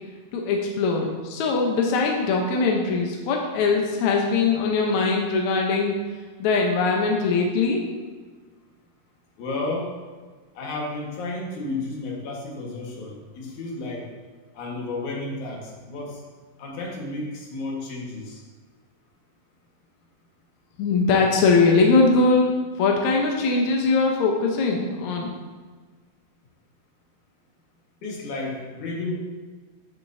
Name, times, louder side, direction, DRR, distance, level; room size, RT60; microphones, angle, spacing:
voice 1, 0.3-6.0 6.4-7.8 20.8-22.5 22.8-25.3, left 4 dB, 75° left, 0 dB, 1.7 m, -21 dB
voice 2, 9.4-9.9 10.5-14.1 14.5-16.2 16.6-18.4 28.0-29.1, left 2 dB, 60° left, -2 dB, 2.6 m, -32 dB
12.5 x 7.2 x 2.7 m, 1.4 s
omnidirectional pair, 4.5 m